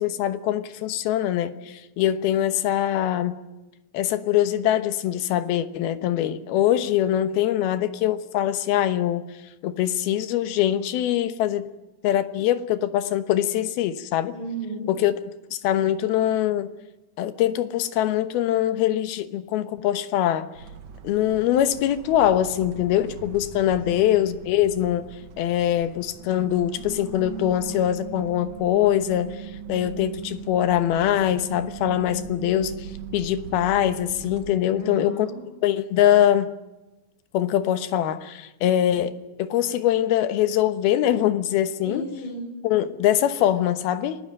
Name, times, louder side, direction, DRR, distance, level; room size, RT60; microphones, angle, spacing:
voice 1, 0.0-3.4 3.9-9.3 9.6-11.7 12.0-14.4 14.9-15.1 15.5-16.7 17.2-20.5 21.0-35.3 35.6-36.5 37.3-42.1 42.6-44.2, left 11 dB, 80° left, 3.0 m, -23 dB
voice 2, 14.3-14.9 23.8-24.1 34.8-35.4 41.8-42.5, right 1 dB, 30° left, 7.5 m, -34 dB
sound 1, 20.5-34.6, right 9 dB, 60° right, 2.1 m, -40 dB
29.5 x 20.0 x 7.6 m
omnidirectional pair, 4.4 m